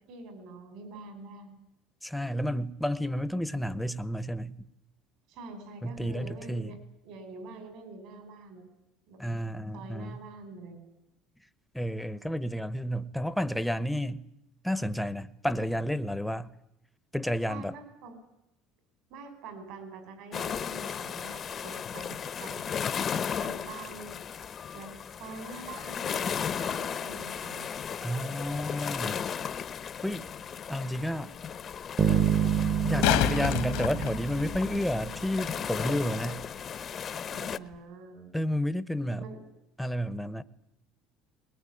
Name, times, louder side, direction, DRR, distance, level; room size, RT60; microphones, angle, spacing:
voice 1, 0.1-1.6 5.3-6.8 7.0-8.6 9.1-9.3 9.7-10.8 17.5-18.2 19.1-22.6 23.4-24.2 24.7-24.9 25.2-27.7 33.4-33.5 37.3-38.4 39.2-39.4, right 3 dB, 65° right, 5.7 m, -45 dB
voice 2, 2.0-4.5 5.8-6.8 9.2-10.2 11.7-14.2 14.6-16.5 17.1-17.7 28.0-29.3 30.0-30.2 30.7-31.3 32.8-36.4 38.3-39.3 39.8-40.4, equal, ahead, 0.9 m, -31 dB
sound 1, 20.3-37.6, left 7 dB, 35° left, 0.9 m, -35 dB
Bass guitar, 32.0-35.1, right 8 dB, 25° right, 1.1 m, -28 dB
sound 2, 32.7-34.8 37.7-37.8, left 13 dB, 85° left, 1.9 m, -28 dB
21.0 x 20.5 x 9.9 m
cardioid pair, 135°, 0 cm